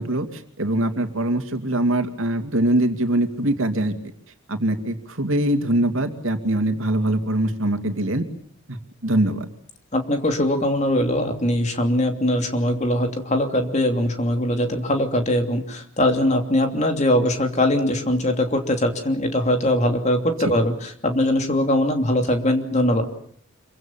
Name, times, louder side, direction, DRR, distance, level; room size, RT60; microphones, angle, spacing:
voice 1, 0.0-4.0 4.5-8.2 8.7-9.5 20.4-20.6, right 1 dB, 75° right, 7 dB, 2.6 m, -23 dB
voice 2, 9.9-23.1, left 1 dB, 35° left, 5 dB, 2.9 m, -21 dB
27.0 x 24.0 x 7.5 m, 0.63 s
head